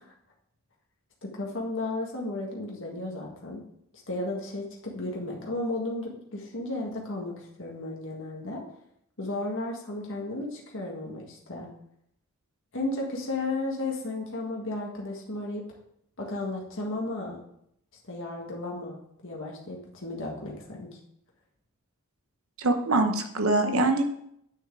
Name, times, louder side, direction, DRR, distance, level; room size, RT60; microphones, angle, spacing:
voice 1, 1.2-3.6 4.1-8.6 9.2-11.7 12.7-15.6 16.2-17.4 18.0-19.0 19.2-21.0, left 2 dB, 60° left, -1 dB, 1.7 m, -34 dB
voice 2, 22.6-24.0, right 2 dB, 65° right, 6 dB, 1.0 m, -23 dB
9.2 x 6.4 x 3.8 m, 0.72 s
head